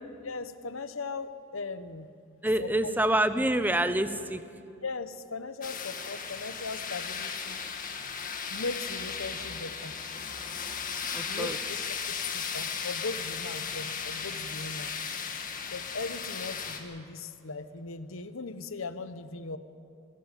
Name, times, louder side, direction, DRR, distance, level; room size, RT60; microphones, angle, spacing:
voice 1, 0.2-2.1 2.6-2.9 4.8-7.6 8.5-9.9 11.3-14.9 15.7-19.6, left 3 dB, 80° left, 11 dB, 1.0 m, -38 dB
voice 2, 2.4-4.4 11.1-11.6, right 1 dB, 10° right, 11 dB, 0.8 m, -27 dB
sound 1, 5.6-16.8, left 6 dB, 40° left, 1.8 m, -36 dB
22.5 x 14.5 x 9.1 m, 2.4 s
head